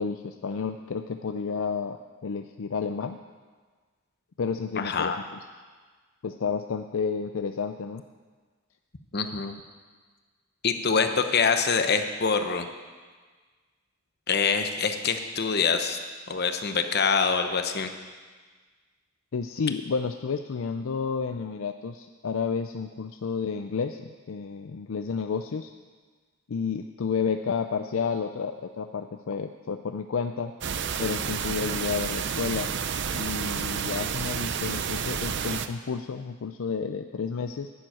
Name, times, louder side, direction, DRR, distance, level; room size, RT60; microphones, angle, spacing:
voice 1, 0.0-3.2 4.4-5.1 6.2-8.0 19.3-25.7 26.5-30.5 31.0-32.7 33.1-37.7, left 5 dB, 70° left, 7 dB, 0.5 m, -31 dB
voice 2, 4.8-5.2 9.1-9.5 10.6-12.7 14.3-16.0 16.3-17.9, left 5 dB, 50° left, 7 dB, 0.9 m, -25 dB
sound 1, 30.6-35.7, right 7 dB, 55° right, 0.6 m, -30 dB
11.0 x 7.6 x 9.1 m, 1.5 s
head